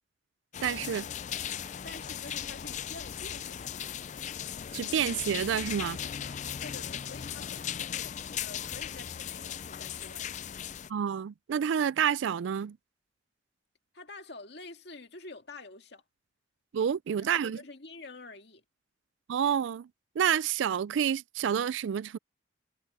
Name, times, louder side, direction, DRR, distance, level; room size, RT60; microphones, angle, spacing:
sound 1, 0.5-10.9, left 9 dB, 40° left, 0.4 m, -37 dB
voice 1, 0.6-1.1 4.7-6.0 10.9-12.8 16.7-17.6 19.3-19.9 20.2-22.2, right 8 dB, 75° right, 0.3 m, -29 dB
voice 2, 1.8-4.0 6.6-10.4 13.9-16.0 17.2-18.6, left 3 dB, 60° left, 2.2 m, -48 dB
head